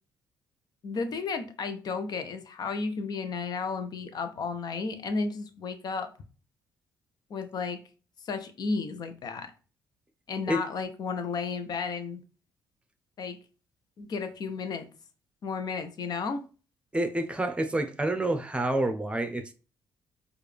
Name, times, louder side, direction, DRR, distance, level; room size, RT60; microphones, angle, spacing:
voice 1, 0.8-6.1 7.3-7.8 8.2-9.5 10.3-12.2 13.2-13.4 14.0-14.9 15.4-16.4, left 4 dB, 55° left, 0.8 m, -33 dB
voice 2, 16.9-19.5, right 1 dB, 15° right, 0.8 m, -28 dB
4.7 x 2.6 x 3.3 m
supercardioid pair, 70°, 8 cm